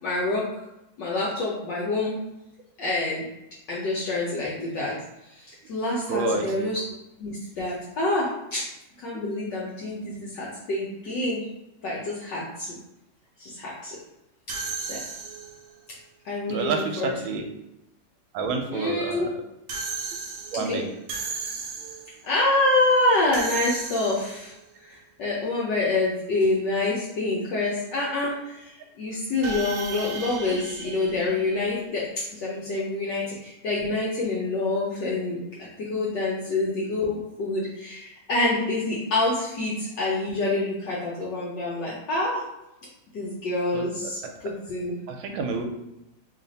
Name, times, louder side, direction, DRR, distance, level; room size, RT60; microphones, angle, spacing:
voice 1, 0.0-0.5 1.0-2.2 2.8-3.3 3.7-5.0 5.3-6.8 7.2-8.7 9.0-11.4 11.8-12.8 13.4-14.0 14.5-14.6 14.9-15.0 16.2-17.1 18.7-19.3 20.5-20.8 22.2-24.5 24.8-35.4 35.8-42.4 43.1-44.2 44.4-44.9, left 2 dB, 65° left, -6 dB, 1.3 m, -27 dB
voice 2, 6.1-6.7 16.5-17.5 18.3-19.3 20.5-20.9 39.5-39.7 43.7-44.3 45.1-45.6, right 4 dB, 90° right, 4 dB, 1.5 m, -29 dB
sound 1, 14.5-15.8 19.7-22.2 23.3-24.6 29.4-32.0, right 4 dB, 75° right, 1.3 m, -35 dB
3.3 x 2.5 x 3.9 m, 0.89 s
omnidirectional pair, 2.2 m